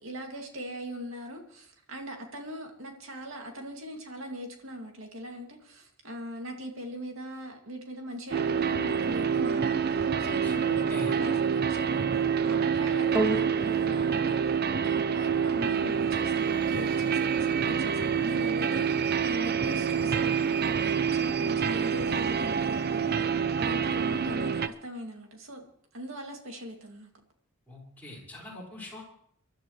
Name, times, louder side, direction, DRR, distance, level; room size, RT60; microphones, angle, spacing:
voice 1, 0.0-18.8 19.2-25.6 25.9-27.1 28.5-28.6, equal, 65° right, 2.4 m, -40 dB
sound 1, 8.3-24.7, right 7 dB, 45° right, 0.5 m, -27 dB
voice 2, 10.4-11.1 27.7-29.0, left 1 dB, 10° left, 5.4 m, -43 dB
sound 2, 13.1-21.7 22.4-22.5, right 2 dB, 15° right, 2.5 m, -39 dB
26.5 x 12.5 x 3.2 m
head